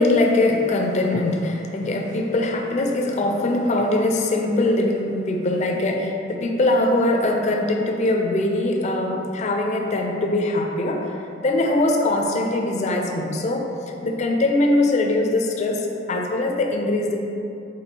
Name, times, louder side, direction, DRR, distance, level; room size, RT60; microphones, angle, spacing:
voice 1, 0.0-11.1 11.4-13.7 14.0-17.2, left 2 dB, 40° left, 2 dB, 0.4 m, -22 dB
4.3 x 3.1 x 2.7 m, 2.7 s
head